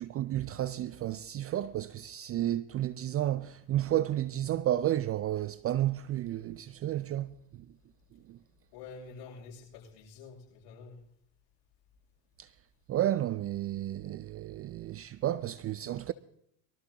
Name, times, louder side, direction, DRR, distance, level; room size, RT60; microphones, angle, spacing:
voice 1, 0.0-7.7 8.3-8.4 12.4-12.5 12.9-16.1, right 13 dB, 30° right, 0.4 m, -32 dB
voice 2, 8.7-11.0, left 4 dB, 60° left, 7.6 m, -48 dB
23.5 x 13.0 x 2.9 m
hypercardioid pair, 85°, 49 cm